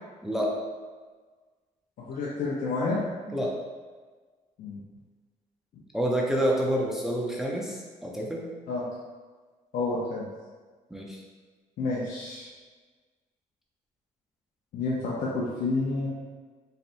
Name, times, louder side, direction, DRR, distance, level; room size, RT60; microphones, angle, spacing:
voice 1, 0.2-0.6 3.3-3.6 5.9-8.5 10.9-11.2, equal, 5° right, -2 dB, 0.6 m, -28 dB
voice 2, 2.1-3.1 4.6-4.8 8.7-8.8 9.7-10.3 11.8-12.5 14.7-16.1, left 3 dB, 75° left, -6 dB, 0.7 m, -29 dB
4.1 x 3.3 x 2.6 m, 1.4 s
cardioid pair, 90°, 15 cm